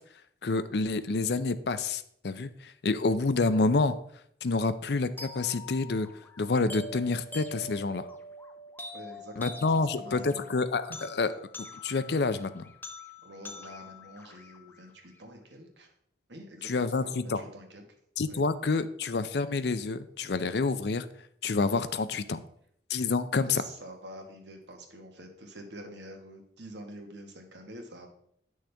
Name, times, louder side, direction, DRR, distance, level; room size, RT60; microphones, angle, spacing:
voice 1, 0.4-3.9 4.4-6.1 6.4-8.1 9.4-11.3 11.8-12.6 16.6-17.4 18.2-21.1 21.4-22.4 22.9-23.6, left 3 dB, 65° left, 13 dB, 0.5 m, -28 dB
sound 1, 5.2-15.2, left 2 dB, 10° left, 0.7 m, -45 dB
voice 2, 8.9-10.4 13.2-15.9 16.3-17.8 18.3-18.4 23.5-28.1, right 1 dB, 75° right, 3 dB, 1.6 m, -47 dB
9.9 x 6.3 x 3.4 m, 0.67 s
head